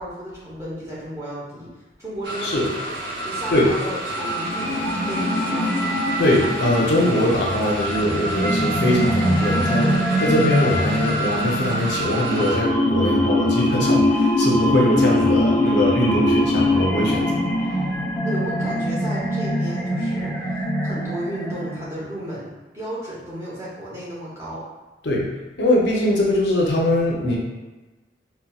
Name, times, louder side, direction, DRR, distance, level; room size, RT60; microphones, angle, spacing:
voice 1, 0.0-2.9 3.2-5.7 18.2-24.7, right 1 dB, 15° right, -8 dB, 0.9 m, -34 dB
sound 1, 2.2-12.6, right 1 dB, 70° right, 0.7 m, -29 dB
sound 2, 4.1-22.1, left 1 dB, 10° left, 0.6 m, -23 dB
voice 2, 6.2-17.3 25.0-25.3 25.6-27.4, left 1 dB, 75° left, -2 dB, 0.6 m, -21 dB
4.0 x 2.1 x 2.3 m, 1.1 s
head